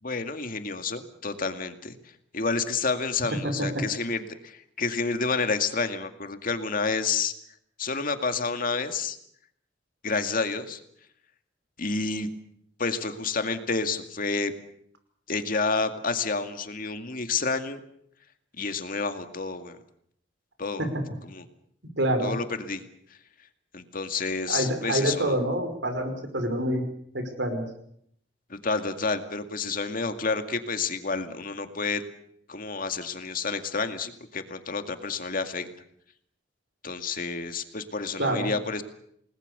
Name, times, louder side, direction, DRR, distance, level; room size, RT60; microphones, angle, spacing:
voice 1, 0.0-2.0 2.3-7.3 7.8-9.2 10.0-10.8 11.8-12.3 12.8-14.5 15.3-17.8 18.6-19.8 20.6-20.8 21.2-21.4 22.2-22.8 23.7-25.4 28.5-32.0 32.5-35.7 36.8-38.8, left 4 dB, 50° left, 7 dB, 2.2 m, -29 dB
voice 2, 3.4-3.8 20.8-20.9 22.0-22.4 24.5-26.8 27.1-27.7 38.2-38.5, right 1 dB, 75° right, 7 dB, 5.4 m, -27 dB
29.0 x 19.5 x 6.9 m, 0.70 s
head